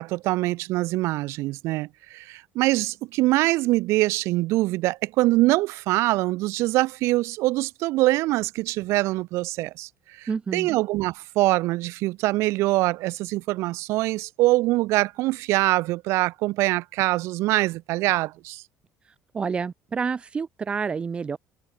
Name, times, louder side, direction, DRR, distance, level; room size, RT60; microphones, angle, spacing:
voice 1, 0.0-9.9 10.2-18.6, right 19 dB, 65° right, 4.2 m, -24 dB
voice 2, 10.3-10.7 19.3-21.4, right 5 dB, 20° right, 2.5 m, -28 dB
cardioid pair, 170°, 5 cm